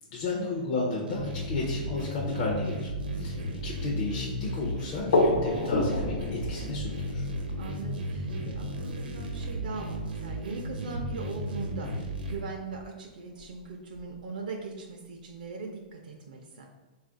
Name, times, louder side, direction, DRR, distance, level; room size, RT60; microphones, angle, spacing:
voice 1, 0.1-2.9 3.2-3.3 3.6-7.2, left 3 dB, 30° left, -3 dB, 0.5 m, -33 dB
sound 1, 1.1-12.4, equal, 90° right, 0.8 m, -34 dB
sound 2, 3.6-8.6 9.4-10.0 10.6-10.7 10.9-11.0 12.2-12.3 12.8-12.9 13.4-13.5 13.9-14.0, left 2 dB, 80° left, 0.5 m, -31 dB
voice 2, 7.5-16.7, right 4 dB, 60° right, 1 dB, 0.5 m, -40 dB
3.8 x 2.4 x 3.7 m, 1.2 s
hypercardioid pair, 175°, 5 cm